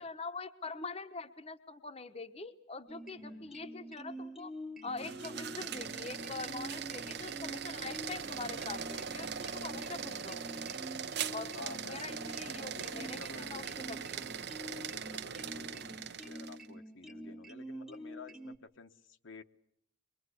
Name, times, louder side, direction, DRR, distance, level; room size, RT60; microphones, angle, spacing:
voice 1, 0.0-4.5 4.8-10.6 11.3-14.3, left 3 dB, 30° left, 8 dB, 0.9 m, -44 dB
sound 1, 2.9-18.6, equal, ahead, 0.9 m, -47 dB
voice 2, 3.2-3.7 11.5-12.1 12.8-13.8 14.7-19.4, left 3 dB, 70° left, 7 dB, 1.1 m, -52 dB
sound 2, 4.9-16.7, right 7 dB, 55° right, 0.9 m, -41 dB
23.5 x 23.5 x 8.2 m, 0.71 s
head